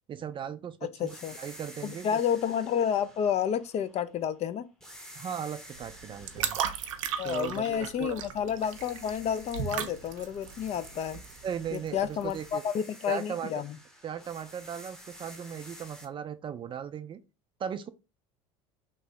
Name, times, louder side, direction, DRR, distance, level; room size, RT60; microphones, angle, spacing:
voice 1, 0.1-1.1 1.4-2.2 5.2-6.6 7.2-8.2 11.4-12.6 13.1-13.5 14.0-17.2 17.6-17.9, right 8 dB, 30° right, 0.4 m, -37 dB
voice 2, 1.0-1.3 1.8-4.7 7.2-11.2 11.7-13.8, left 8 dB, 40° left, 0.4 m, -30 dB
sound 1, 1.1-4.3 4.8-8.2 8.6-16.1, equal, 5° left, 0.8 m, -51 dB
sound 2, 5.7-12.5, right 9 dB, 90° right, 0.5 m, -37 dB
3.0 x 2.7 x 3.2 m
hypercardioid pair, 85°, 16 cm